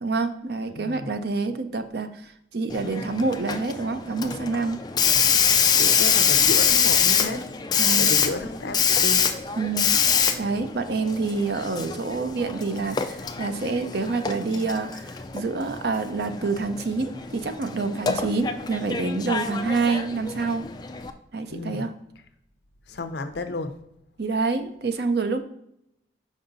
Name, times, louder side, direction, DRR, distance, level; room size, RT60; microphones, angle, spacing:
voice 1, 0.0-4.8 7.8-8.1 9.5-10.0 10.4-20.7 21.3-21.9 24.2-25.4, right 3 dB, 60° right, 0.6 m, -27 dB
voice 2, 0.7-1.1 5.8-7.4 8.0-9.3 21.5-21.9 22.9-23.8, left 2 dB, 65° left, 0.7 m, -32 dB
Hiss, 2.7-21.1, left 7 dB, 25° left, 0.4 m, -25 dB
5.4 x 4.9 x 3.9 m
head